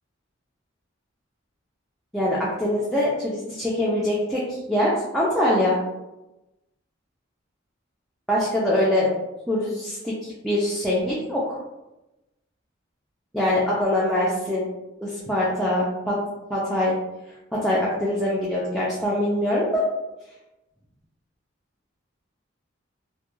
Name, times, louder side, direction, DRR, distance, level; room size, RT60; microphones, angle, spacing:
voice 1, 2.1-5.8 8.3-9.1 9.5-11.6 13.3-14.7 15.0-16.2 16.5-16.9 17.5-19.8, left 1 dB, ahead, -7 dB, 0.3 m, -23 dB
2.2 x 2.2 x 2.9 m, 0.99 s
head